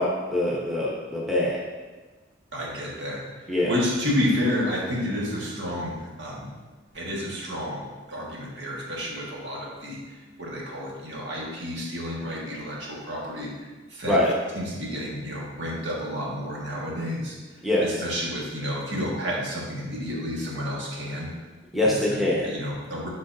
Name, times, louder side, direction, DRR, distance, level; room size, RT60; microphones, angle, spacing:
voice 1, 0.0-1.6 3.5-3.7 14.1-14.3 17.6-18.0 21.7-22.5, left 1 dB, ahead, -5 dB, 1.0 m, -24 dB
voice 2, 2.5-6.5 6.9-13.5 13.9-14.2 14.6-17.4 17.8-21.3 21.8-22.0 22.4-23.1, equal, 65° right, -5 dB, 1.7 m, -30 dB
10.5 x 4.0 x 2.7 m, 1.3 s
head